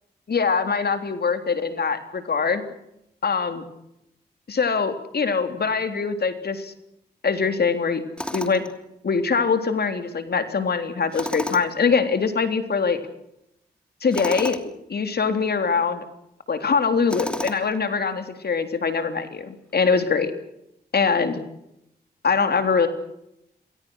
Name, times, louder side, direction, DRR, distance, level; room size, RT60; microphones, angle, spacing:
voice 1, 0.3-2.6 3.2-3.7 4.5-6.7 7.2-8.0 8.3-8.6 9.0-13.0 14.0-16.0 16.5-20.3 20.9-21.4 22.2-22.9, left 5 dB, 65° left, 8 dB, 3.6 m, -23 dB
Tools, 8.2-8.7 11.1-11.9 14.1-14.7 17.1-17.8, equal, 5° left, 3.1 m, -32 dB
28.0 x 21.5 x 6.5 m, 0.81 s
cardioid pair, 65°, 18 cm